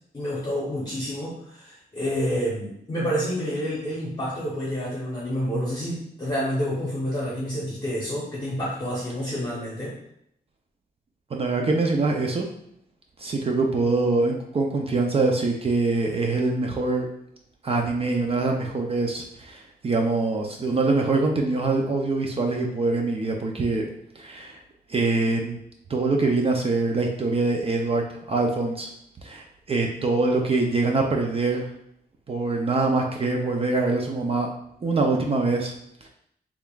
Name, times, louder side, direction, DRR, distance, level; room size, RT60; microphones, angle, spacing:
voice 1, 0.1-10.0, equal, 25° left, -6 dB, 0.9 m, -28 dB
voice 2, 11.3-12.5 13.2-17.1 17.6-23.8 24.2-24.6 24.9-25.6 25.9-28.9 29.2-31.6 32.3-34.5 34.8-35.7 36.0-36.1, right 3 dB, 35° right, 1 dB, 0.4 m, -24 dB
3.5 x 3.4 x 2.3 m, 0.73 s
wide cardioid pair, 130°, 17 cm